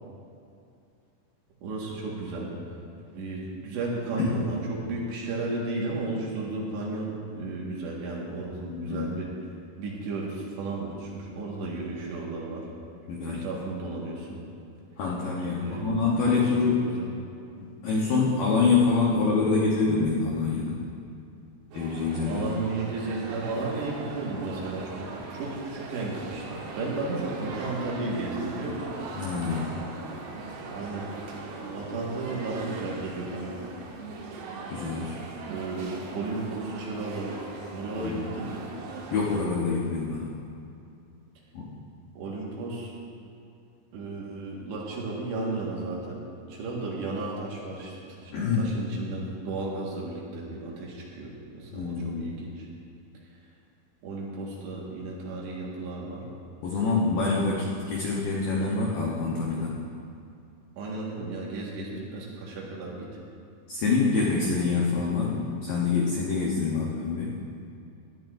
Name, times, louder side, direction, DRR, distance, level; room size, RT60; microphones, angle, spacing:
voice 1, 1.6-2.5 3.1-9.3 9.8-12.7 13.2-14.3 15.6-16.5 16.9-17.1 22.3-28.9 30.7-31.1 31.7-33.5 35.5-37.4 37.7-38.7 42.2-42.9 43.9-46.2 46.5-47.9 48.2-52.7 54.0-56.3 60.8-63.1, right 3 dB, 65° right, -4 dB, 3.6 m, -34 dB
voice 2, 8.6-9.1 13.1-13.4 15.0-16.8 17.6-20.8 21.7-22.5 29.2-29.7 34.7-35.2 38.0-38.2 39.1-40.3 41.5-41.7 48.3-48.7 51.7-52.2 56.6-59.7 63.7-67.3, left 4 dB, 85° left, -4 dB, 1.9 m, -26 dB
sound 1, 21.7-39.5, right 3 dB, 90° right, 4.0 m, -40 dB
19.0 x 12.5 x 2.6 m, 2.6 s
omnidirectional pair, 5.7 m